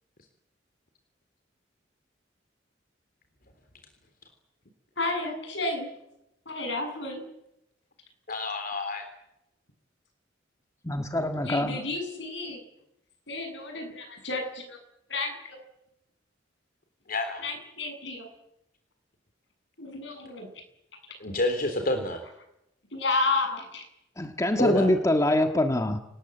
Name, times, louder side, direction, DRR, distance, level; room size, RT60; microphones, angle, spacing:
voice 1, 5.0-5.9 6.5-7.2 11.4-12.6 13.3-14.8 15.1-15.6 17.4-18.3 19.8-20.5 22.9-23.9, left 3 dB, 70° left, 5 dB, 7.7 m, -31 dB
voice 2, 8.3-9.1 17.1-17.4 21.2-22.2 24.6-24.9, left 2 dB, 50° left, 6 dB, 3.6 m, -28 dB
voice 3, 10.8-11.8 24.2-26.0, left 1 dB, 15° left, 6 dB, 1.7 m, -24 dB
28.0 x 19.5 x 9.2 m, 0.86 s
head